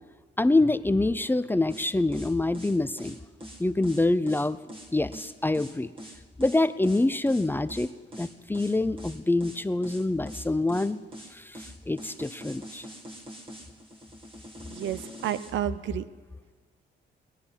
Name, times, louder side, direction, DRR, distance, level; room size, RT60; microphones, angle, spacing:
voice 1, 0.4-3.2 3.6-4.6 4.9-5.9 6.4-7.9 8.2-11.0 11.3-12.9, left 2 dB, 10° left, 14 dB, 0.5 m, -26 dB
sound 1, 1.7-15.6, equal, 25° right, 1.9 m, -44 dB
voice 2, 14.7-16.0, right 11 dB, 70° right, 14 dB, 0.7 m, -31 dB
19.5 x 10.5 x 5.6 m, 1.4 s
cardioid pair, 90°, 20 cm